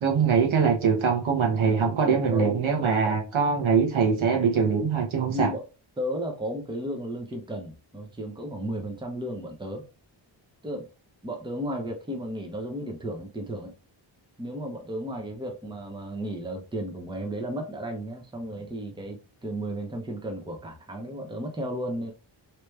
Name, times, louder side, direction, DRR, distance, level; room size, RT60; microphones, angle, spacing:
voice 1, 0.0-5.5, right 6 dB, 80° right, 1.3 m, -23 dB
voice 2, 1.8-3.2 5.2-5.6 6.0-9.8 10.6-10.9 11.2-13.7 14.4-22.1, equal, 10° right, 0.8 m, -34 dB
3.2 x 3.0 x 3.3 m
wide cardioid pair, 120°, 47 cm